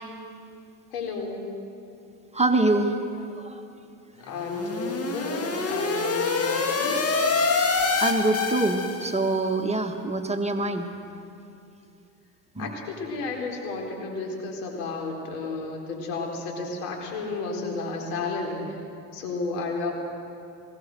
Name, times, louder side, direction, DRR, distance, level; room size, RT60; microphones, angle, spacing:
voice 1, 0.9-1.5 4.2-7.0 12.6-18.8 19.1-19.9, left 3 dB, 70° left, 0 dB, 4.3 m, -32 dB
voice 2, 2.3-3.6 8.0-10.9 12.5-12.7, right 2 dB, 15° right, 3 dB, 1.7 m, -25 dB
sound 1, 4.3-9.3, left 4 dB, 30° left, 2.1 m, -26 dB
20.5 x 17.0 x 7.8 m, 2.6 s
hypercardioid pair, 75°, 48 cm